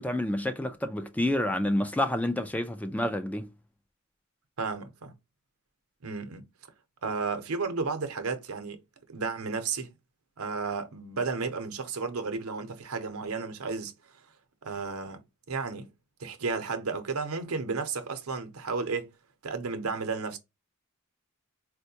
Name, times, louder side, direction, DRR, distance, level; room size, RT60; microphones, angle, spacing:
voice 1, 0.0-3.5, left 1 dB, 5° left, 0.3 m, -29 dB
voice 2, 4.6-5.1 6.0-6.4 7.0-8.8 9.1-9.9 10.4-13.9 14.6-15.2 15.5-15.9 16.2-19.1 19.4-20.4, right 4 dB, 85° right, 0.7 m, -33 dB
4.4 x 2.2 x 2.7 m
head